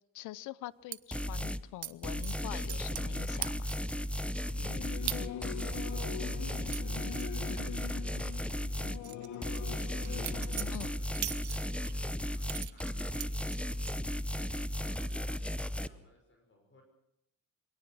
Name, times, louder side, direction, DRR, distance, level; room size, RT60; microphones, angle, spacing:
voice 1, 0.1-3.8 10.7-10.9, left 15 dB, 90° left, 20 dB, 0.7 m, -44 dB
sound 1, 0.9-1.0 1.8-1.9 2.2-3.1 3.4-3.9 4.4-4.5 5.1-5.2 5.6-7.9 8.2-8.4 8.8-11.9 12.4-14.0 14.4-14.8 15.1-15.5, right 13 dB, 70° right, 0.9 m, -41 dB
sound 2, 1.1-1.6 2.0-9.0 9.4-15.9, equal, 5° left, 0.8 m, -35 dB
Singing / Musical instrument, 4.5-10.7, left 10 dB, 75° left, 1.5 m, -43 dB
voice 2, 5.5-6.4 8.0-8.4 8.8-13.4 14.8-15.2 15.7-16.8, left 2 dB, 40° left, 3 dB, 5.7 m, -62 dB
24.0 x 18.0 x 6.2 m, 0.80 s
cardioid pair, 90°, 30 cm